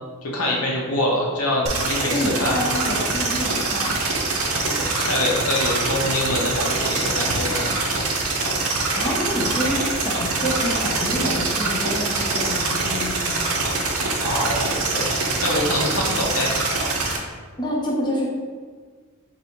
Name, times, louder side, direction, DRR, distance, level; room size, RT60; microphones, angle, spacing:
voice 1, 0.2-2.6 4.6-7.7 13.8-16.5, left 1 dB, 80° left, -2 dB, 0.9 m, -25 dB
sound 1, 1.7-17.2, right 3 dB, 85° right, 0.6 m, -24 dB
voice 2, 2.1-4.0 8.9-13.3 17.6-18.3, equal, 20° left, -4 dB, 0.6 m, -27 dB
3.4 x 2.6 x 4.4 m, 1.6 s
head